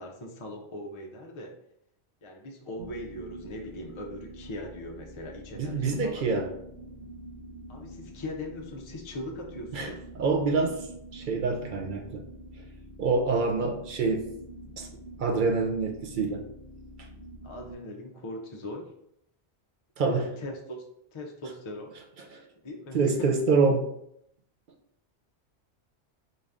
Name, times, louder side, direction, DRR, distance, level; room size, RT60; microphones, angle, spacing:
voice 1, 0.0-1.6 2.2-6.2 7.7-10.0 17.4-18.9 20.2-20.8 21.1-21.9 22.6-23.3, left 1 dB, 45° left, 1 dB, 0.4 m, -40 dB
sound 1, 2.8-17.7, right 1 dB, 85° right, 1.1 m, -46 dB
voice 2, 5.5-6.5 9.7-10.9 11.1-12.2 13.0-14.2 14.8-14.9 15.2-16.4 20.0-20.3 22.3-22.4 22.9-23.9, right 4 dB, 55° right, 3 dB, 0.6 m, -26 dB
4.0 x 2.5 x 3.4 m, 0.74 s
omnidirectional pair, 1.1 m